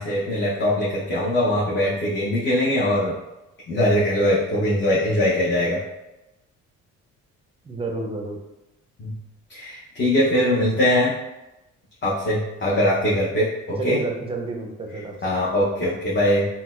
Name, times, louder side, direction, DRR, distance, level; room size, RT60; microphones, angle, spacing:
voice 1, 0.0-3.1 3.7-5.8 9.0-9.1 9.5-11.2 12.0-14.0 15.2-16.5, left 1 dB, 35° left, -6 dB, 0.7 m, -21 dB
voice 2, 7.7-8.4 13.8-15.4 15.8-16.0, right 3 dB, 20° right, 2 dB, 0.5 m, -30 dB
3.8 x 2.2 x 2.3 m, 0.98 s
cardioid pair, 90°, 30 cm